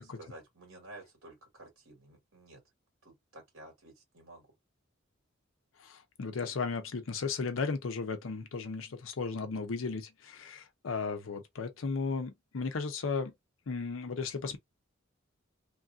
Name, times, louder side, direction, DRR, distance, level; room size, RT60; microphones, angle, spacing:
voice 1, 0.0-2.6 3.0-4.5, right 2 dB, 85° right, 1.9 m, -52 dB
voice 2, 5.8-13.3 13.7-14.6, left 4 dB, 75° left, 0.6 m, -35 dB
3.1 x 2.3 x 2.6 m
head